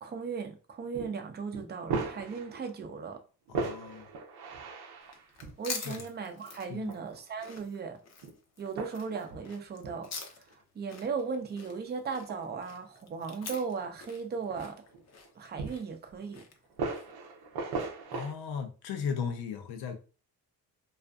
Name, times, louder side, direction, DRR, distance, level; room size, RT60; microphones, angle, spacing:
voice 1, 0.0-3.2 5.6-8.0 8.6-14.8 15.4-16.4, right 5 dB, 25° right, 0.5 m, -37 dB
sound 1, 0.9-1.1 1.5-2.9 3.5-5.5 6.6-7.2 7.6-7.7 8.2-8.4 8.8-9.5 9.8-10.1 11.0-11.1 12.1-12.4 13.1-13.2 13.7-13.8 14.2-15.3 15.6-16.2 16.7-18.3, right 4 dB, 80° right, 0.6 m, -38 dB
voice 2, 3.5-4.1 5.8-6.0 6.7-6.9 18.1-20.0, left 6 dB, 85° left, 0.7 m, -36 dB
sound 2, 5.0-17.3, left 5 dB, 45° left, 0.6 m, -46 dB
2.4 x 2.4 x 2.3 m
cardioid pair, 90°, 38 cm